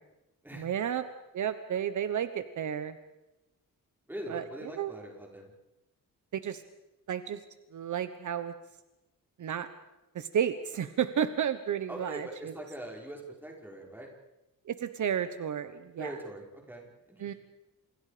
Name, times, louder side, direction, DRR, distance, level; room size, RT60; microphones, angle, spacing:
voice 1, 0.5-1.0 1.3-3.0 4.3-4.9 6.3-6.6 7.1-7.4 7.7-8.5 9.4-9.7 10.1-12.5 14.7-16.1 17.2-17.3, right 8 dB, 55° right, 10 dB, 1.2 m, -32 dB
voice 2, 4.1-5.5 11.9-14.1 16.0-17.4, right 1 dB, 5° right, -1 dB, 5.4 m, -42 dB
29.5 x 28.0 x 5.1 m, 0.99 s
wide cardioid pair, 165°, 34 cm